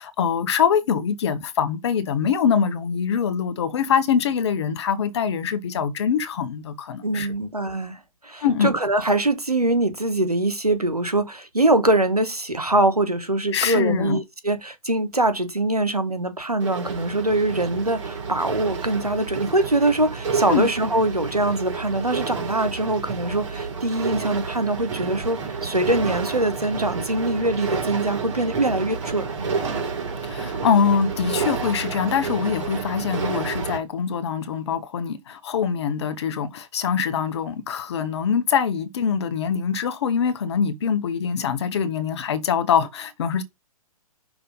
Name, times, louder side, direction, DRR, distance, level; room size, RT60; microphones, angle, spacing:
voice 1, 0.0-7.3 8.4-8.7 13.5-14.2 20.5-20.7 30.2-43.4, left 7 dB, 45° left, 1.1 m, -23 dB
voice 2, 7.0-29.5, right 2 dB, 90° right, 1.3 m, -23 dB
sound 1, 16.6-33.8, right 5 dB, 55° right, 3.6 m, -30 dB
5.9 x 3.6 x 5.4 m
figure-of-eight pair, 120°, 19 cm